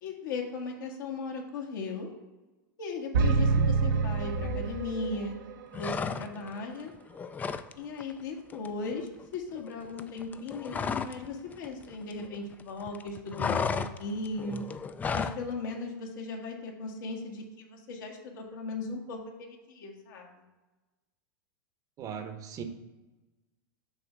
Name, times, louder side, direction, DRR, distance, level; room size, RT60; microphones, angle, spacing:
voice 1, 0.0-2.1 2.8-5.4 5.7-6.9 7.8-14.7 15.1-20.4, left 3 dB, 75° left, 1 dB, 1.7 m, -37 dB
sound 1, 3.1-5.3, right 4 dB, 75° right, 0.7 m, -26 dB
sound 2, 5.7-6.6 6.9-7.7 8.0-8.2 8.5-11.3 11.5-12.6 12.9-15.4, left 5 dB, 15° left, 0.3 m, -33 dB
voice 2, 22.0-22.6, right 7 dB, 35° right, 7 dB, 0.8 m, -38 dB
6.9 x 3.3 x 5.9 m, 1.1 s
hypercardioid pair, 120°, 11 cm